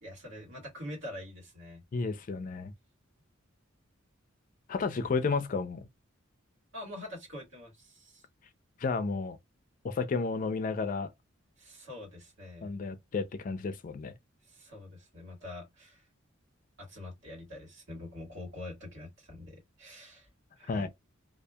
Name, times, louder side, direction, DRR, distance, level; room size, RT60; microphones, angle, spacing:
voice 1, 0.0-1.8 6.7-8.2 11.6-12.7 14.5-16.1 16.8-20.3 20.6-20.9, left 1 dB, 60° right, 1.7 m, -45 dB
voice 2, 1.9-2.7 4.7-5.9 8.8-9.4 9.8-11.1 12.6-14.1 20.7-20.9, left 4 dB, 40° left, 0.3 m, -32 dB
2.7 x 2.4 x 2.2 m
head